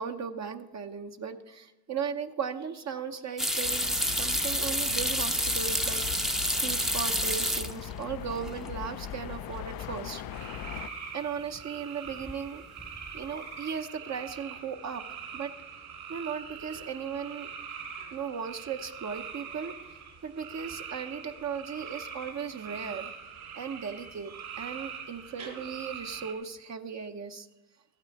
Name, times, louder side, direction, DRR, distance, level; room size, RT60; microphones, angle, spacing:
voice 1, 0.0-6.0 6.6-10.2 11.0-12.6 13.0-15.0 15.3-15.5 16.1-17.5 18.1-27.5, right 6 dB, 50° right, 6 dB, 0.8 m, -37 dB
sound 1, 3.4-8.0 8.3-8.9 9.3-9.4 12.1-12.5 12.8-13.3, equal, ahead, 0.6 m, -29 dB
sound 2, 3.6-10.9, left 10 dB, 70° left, 0.6 m, -40 dB
sound 3, 10.3-26.3, right 7 dB, 70° right, 3.5 m, -43 dB
14.5 x 8.8 x 4.6 m, 1.0 s
cardioid pair, 80°, 37 cm